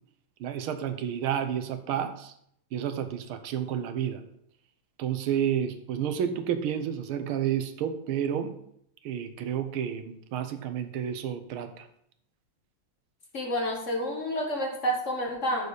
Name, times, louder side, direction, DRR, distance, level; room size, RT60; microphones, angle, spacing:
voice 1, 0.4-2.3 2.7-4.2 5.0-8.5 9.0-11.9, right 9 dB, 80° right, 9 dB, 1.6 m, -30 dB
voice 2, 13.3-15.7, equal, 40° left, 0 dB, 1.6 m, -29 dB
6.8 x 6.7 x 4.9 m, 0.70 s
omnidirectional pair, 2.3 m